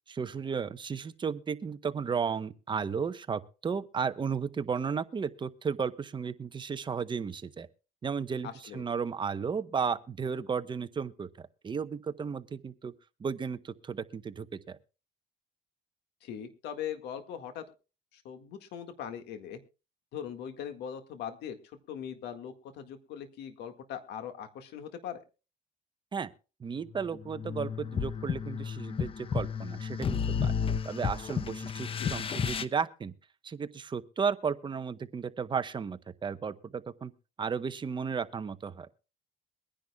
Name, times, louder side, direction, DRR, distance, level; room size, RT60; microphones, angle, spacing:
voice 1, 0.1-7.7 8.0-12.9 13.2-14.8 26.1-26.3 26.6-30.5 30.8-33.1 33.4-37.1 37.4-38.9, right 6 dB, 30° right, 0.8 m, -34 dB
voice 2, 8.4-8.9 16.2-17.6 18.1-19.6 20.1-25.2 31.9-32.2, left 9 dB, 80° left, 1.8 m, -41 dB
sound 1, 26.9-32.6, left 6 dB, 35° left, 0.7 m, -32 dB
23.0 x 10.5 x 2.3 m
cardioid pair, 110°, 17 cm